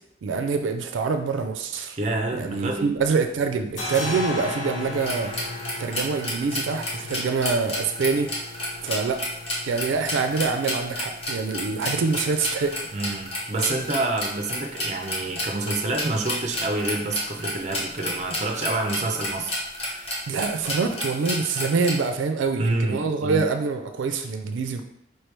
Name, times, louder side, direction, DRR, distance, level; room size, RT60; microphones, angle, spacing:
voice 1, 0.2-2.0 2.3-5.3 5.8-8.3 8.8-9.3 9.6-12.8 20.3-24.8, right 4 dB, 90° right, 7 dB, 0.4 m, -25 dB
voice 2, 2.0-3.0 12.9-19.5 19.9-20.1 22.6-23.4, right 2 dB, 35° right, 3 dB, 0.5 m, -28 dB
sound 1, 2.3-3.1 3.4-20.9, left 2 dB, 90° left, 1.0 m, -39 dB
sound 2, 5.0-22.0, left 1 dB, 30° left, 0.9 m, -30 dB
4.4 x 3.1 x 3.3 m, 0.75 s
head